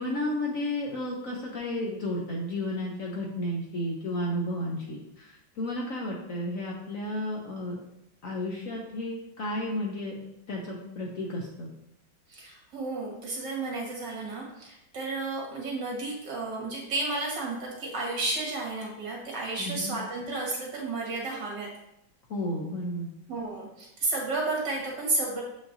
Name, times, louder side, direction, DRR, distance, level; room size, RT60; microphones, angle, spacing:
voice 1, 0.0-7.8 8.2-10.2 10.5-11.7 19.6-20.0 22.3-23.1, left 1 dB, 55° left, -2 dB, 1.0 m, -32 dB
voice 2, 12.3-21.7 23.3-25.4, right 2 dB, 65° right, -2 dB, 2.2 m, -32 dB
7.1 x 5.1 x 2.7 m, 0.84 s
omnidirectional pair, 2.0 m